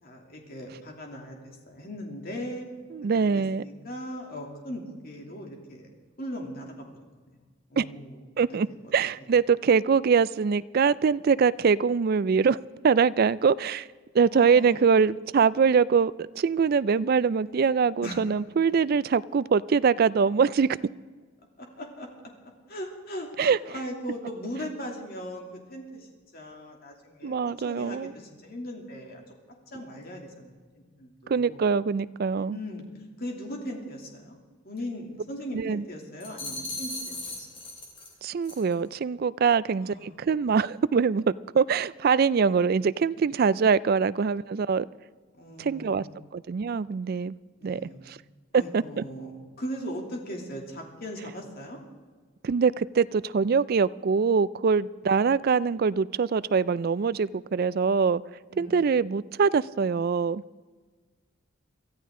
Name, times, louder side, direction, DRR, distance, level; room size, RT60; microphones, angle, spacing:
voice 1, 0.0-2.7 3.0-5.9 6.2-6.9 7.7-8.2 14.3-14.9 18.0-18.2 21.6-22.1 22.7-29.2 29.7-31.6 32.4-32.9 33.2-34.4 34.6-37.5 39.8-40.2 45.4-46.3 47.6-48.2 48.5-51.8 58.5-59.0, equal, 45° left, 1 dB, 2.7 m, -39 dB
voice 2, 2.9-3.6 7.8-7.9 8.4-8.7 8.9-12.6 12.8-13.9 14.1-20.7 23.4-23.6 27.2-28.1 31.3-32.6 35.5-35.8 38.2-41.2 41.5-44.9 45.6-46.0 46.3-47.3 47.6-48.2 48.5-49.0 52.4-58.2 58.6-60.4, right 5 dB, 45° right, 18 dB, 0.3 m, -23 dB
sound 1, 36.2-38.1 38.4-38.7, left 2 dB, 25° left, 3.2 m, -37 dB
23.5 x 14.0 x 3.7 m, 1.4 s
head